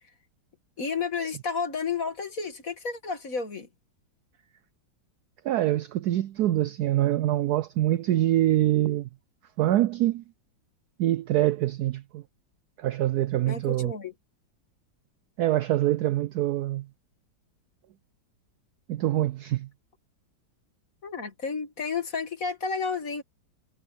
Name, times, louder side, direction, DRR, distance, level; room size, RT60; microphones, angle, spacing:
voice 1, 0.8-3.7 13.5-14.1 21.0-23.2, left 5 dB, 45° left, 2.4 m, -31 dB
voice 2, 5.4-9.1 9.6-10.2 11.0-12.2 12.8-13.9 15.4-16.9 18.9-19.7, right 14 dB, 75° right, 0.9 m, -25 dB
omnidirectional pair, 2.1 m